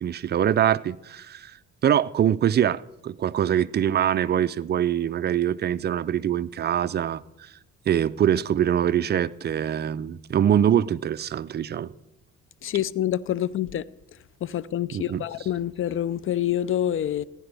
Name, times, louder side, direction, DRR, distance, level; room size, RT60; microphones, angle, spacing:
voice 1, 0.0-1.6 1.8-7.5 7.9-11.9 14.9-15.2, right 10 dB, 35° right, 0.4 m, -24 dB
voice 2, 12.6-13.8 14.4-17.2, left 11 dB, 45° left, 0.4 m, -27 dB
15.5 x 9.8 x 3.4 m
cardioid pair, 90°, 30 cm